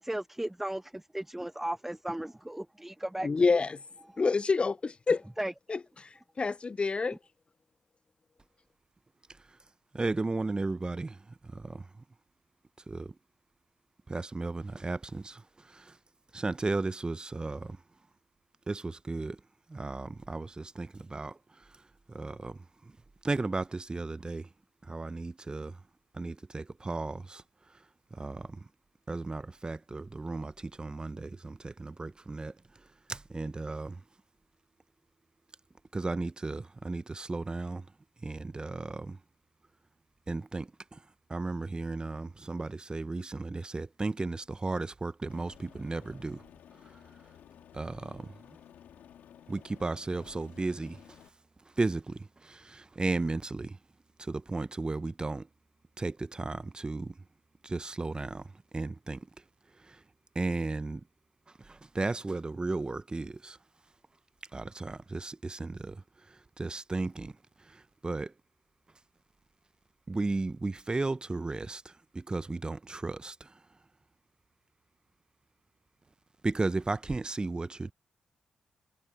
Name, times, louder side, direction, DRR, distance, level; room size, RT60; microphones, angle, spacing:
voice 1, 0.0-3.6 5.4-5.5, right 1 dB, 10° right, 0.6 m, -36 dB
voice 2, 3.2-3.8 4.2-5.2 5.7-7.2, left 4 dB, 40° left, 0.5 m, -28 dB
voice 3, 9.9-11.2 11.5-11.8 12.9-13.1 14.1-15.4 15.7-15.9 16.3-17.8 18.7-19.4 19.7-21.4 22.1-22.6 23.2-24.5 24.9-25.7 26.1-27.4 28.2-28.6 29.1-32.5 33.1-34.0 35.9-37.8 38.2-39.2 40.3-41.0 41.3-46.4 47.7-48.3 49.5-51.0 51.8-53.8 54.2-55.5 56.0-57.1 57.6-58.4 58.7-59.2 59.9-60.0 60.3-61.0 61.7-63.6 64.5-66.0 66.6-67.3 68.0-68.3 70.1-71.8 72.1-73.5 76.4-77.9, right 3 dB, 30° right, 0.9 m, -34 dB
Aircraft, 45.3-51.3, left 10 dB, 75° left, 3.2 m, -55 dB
hypercardioid pair, 40°, 3 cm